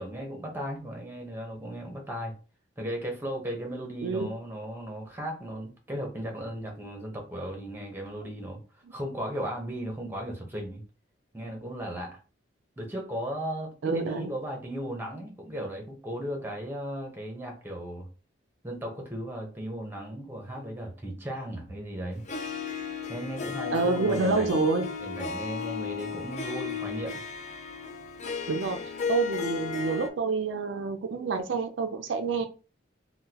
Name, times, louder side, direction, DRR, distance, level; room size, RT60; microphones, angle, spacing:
voice 1, 0.0-2.3 2.8-10.8 11.3-12.2 12.8-18.1 18.6-22.2 23.1-24.6 25.0-27.2, equal, 10° right, 2 dB, 0.8 m, -36 dB
voice 2, 13.8-14.3 23.7-24.9 28.5-32.5, right 4 dB, 70° right, 6 dB, 0.4 m, -28 dB
Harp, 22.3-30.1, left 6 dB, 40° left, 0.5 m, -34 dB
3.7 x 2.2 x 2.8 m, 0.35 s
head